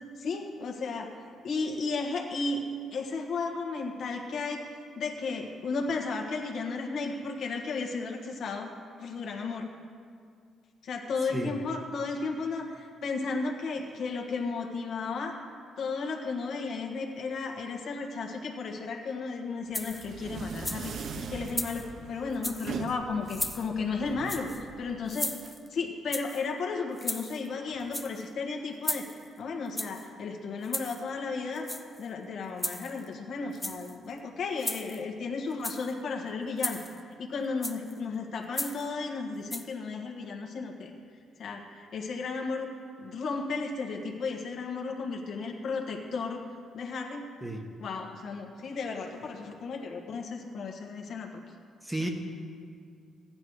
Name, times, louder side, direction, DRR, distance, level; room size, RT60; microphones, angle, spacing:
voice 1, 0.2-1.1 1.4-2.6 2.9-4.6 4.9-8.7 9.0-9.7 10.8-15.4 15.8-25.3 25.7-29.1 29.4-31.7 32.0-36.8 37.2-40.9 41.4-42.7 43.0-46.4 46.7-47.3 47.8-51.3 52.0-52.1, left 4 dB, 65° left, 2 dB, 1.6 m, -34 dB
voice 2, 11.3-11.5 47.4-47.6 51.8-52.1, right 1 dB, 10° right, 3 dB, 1.3 m, -32 dB
sound 1, 19.7-20.1 20.5-21.0 21.5-21.9 22.3-22.7 23.3-23.7 24.3-24.6 25.1-25.7 26.1-26.4 27.0-27.5 27.8-28.3 28.8-29.3 29.8-30.1 30.6-31.0 31.6-32.1 32.6-33.1 33.5-33.9 34.6-35.0 35.5-35.9 36.6-37.0 37.6-37.9 38.5-38.9 39.5-39.6, left 1 dB, 10° left, 0.8 m, -35 dB
sound 2, 19.7-25.5, right 6 dB, 60° right, 0.7 m, -41 dB
14.5 x 10.5 x 4.8 m, 2.2 s
cardioid pair, 90°, 0 cm